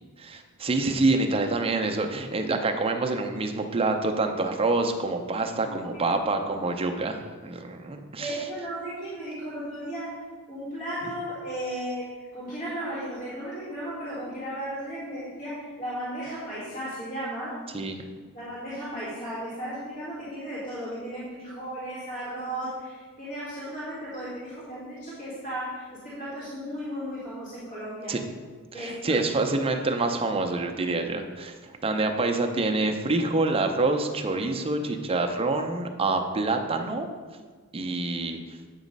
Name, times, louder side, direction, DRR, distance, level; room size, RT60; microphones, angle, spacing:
voice 1, 0.2-8.3 17.7-18.0 28.1-28.2 28.7-37.1 37.7-38.4, right 3 dB, 25° right, 4 dB, 0.5 m, -26 dB
voice 2, 5.5-6.1 8.2-17.6 18.3-28.2 28.7-29.3, right 1 dB, 40° left, -11 dB, 2.1 m, -35 dB
8.2 x 3.0 x 5.2 m, 1.5 s
head